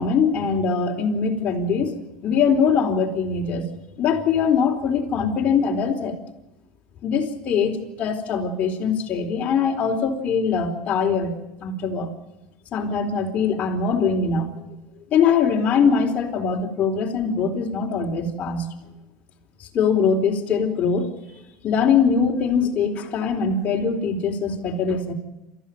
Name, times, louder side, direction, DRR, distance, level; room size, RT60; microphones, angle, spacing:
voice 1, 0.0-1.9 2.2-3.7 4.0-6.2 7.0-11.3 11.6-12.1 12.7-14.6 15.1-18.7 19.7-21.1 21.6-25.1, left 6 dB, 30° left, 1 dB, 4.3 m, -22 dB
28.0 x 14.5 x 9.2 m, 0.99 s
supercardioid pair, 140°, 4 cm